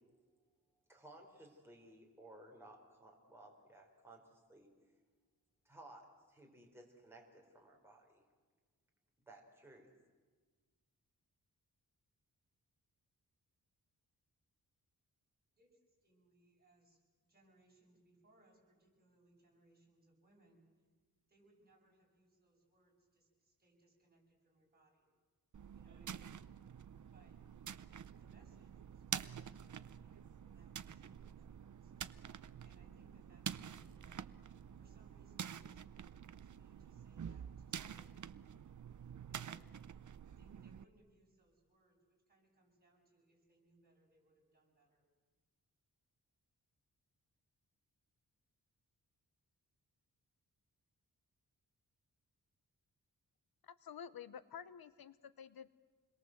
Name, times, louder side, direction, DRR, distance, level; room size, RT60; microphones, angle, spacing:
voice 1, 0.9-4.7 5.6-8.2 9.3-9.9, right 1 dB, 5° right, -1 dB, 4.4 m, -58 dB
voice 2, 15.5-17.0 17.3-20.6 21.3-25.1 25.7-26.4 27.1-27.4 28.2-31.9 32.6-34.3 34.8-38.1 39.3-39.6 40.4-42.0 42.3-45.0, right 2 dB, 25° right, -2 dB, 8.0 m, -71 dB
sound 1, 25.5-40.8, right 8 dB, 55° right, 0.7 m, -48 dB
voice 3, 53.6-55.7, left 8 dB, 75° left, 15 dB, 0.9 m, -51 dB
28.5 x 21.5 x 7.9 m, 1.4 s
wide cardioid pair, 125°, 37 cm